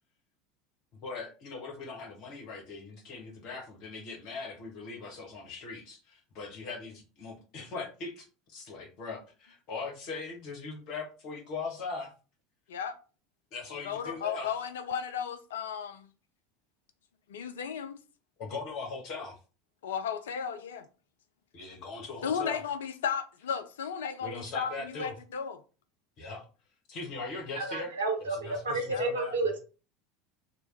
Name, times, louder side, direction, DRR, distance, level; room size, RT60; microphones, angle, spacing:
voice 1, 1.0-12.1 13.5-14.5 18.4-19.4 21.5-22.6 24.2-25.1 26.2-26.4 26.9-27.9 28.2-29.5, left 4 dB, 50° left, 1.2 m, -40 dB
voice 2, 13.8-16.1 17.3-18.0 19.8-20.8 22.2-25.6 28.9-29.1, left 7 dB, 65° left, 0.3 m, -34 dB
voice 3, 27.6-29.6, right 3 dB, 70° right, 1.0 m, -31 dB
3.1 x 2.3 x 3.3 m
figure-of-eight pair, 75°, 0 cm